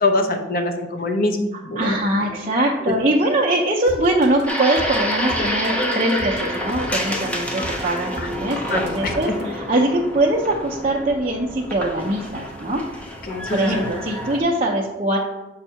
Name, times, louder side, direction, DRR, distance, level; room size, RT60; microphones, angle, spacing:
voice 1, 0.0-2.3 2.9-3.0 8.2-8.3 8.7-9.1 13.2-13.9, left 2 dB, 50° left, 5 dB, 0.7 m, -24 dB
voice 2, 1.8-13.0 13.5-15.2, right 1 dB, 30° right, -3 dB, 0.5 m, -22 dB
sound 1, 3.9-9.5, right 2 dB, 60° right, 0.9 m, -37 dB
sound 2, 4.5-14.4, equal, 5° left, 0.6 m, -28 dB
7.2 x 2.7 x 5.5 m, 1.1 s
head